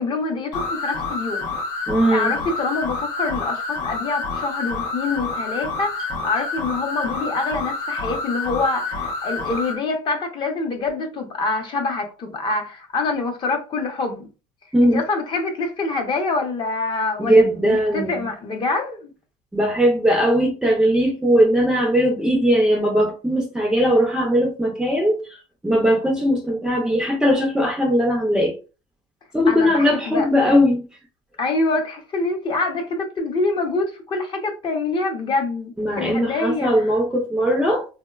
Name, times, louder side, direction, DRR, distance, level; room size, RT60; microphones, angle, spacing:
voice 1, 0.0-1.5 2.1-14.3 14.8-19.1 29.5-30.6 31.4-36.9, left 3 dB, 35° left, 0.6 m, -25 dB
sound 1, 0.5-9.8, left 3 dB, 80° left, 0.7 m, -28 dB
voice 2, 1.9-2.3 14.7-15.0 17.2-18.3 19.5-25.4 25.6-28.5 29.3-30.8 35.8-37.8, equal, 5° right, 0.4 m, -19 dB
3.6 x 2.1 x 2.3 m
cardioid pair, 155°, 14 cm